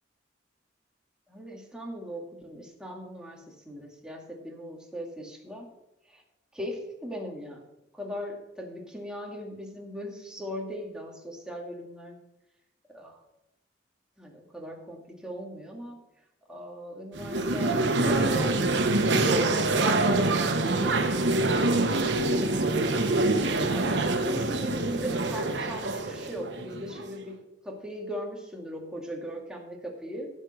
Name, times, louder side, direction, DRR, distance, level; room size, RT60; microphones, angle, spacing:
voice 1, 1.3-5.7 6.1-6.2 6.5-7.6 7.9-12.2 12.9-13.2 14.2-16.0 16.5-18.9 19.2-27.4 27.6-30.3, equal, 5° right, 0 dB, 2.1 m, -38 dB
sound 1, 17.2-27.2, right 2 dB, 80° right, 1.1 m, -25 dB
15.5 x 5.2 x 6.4 m, 0.89 s
head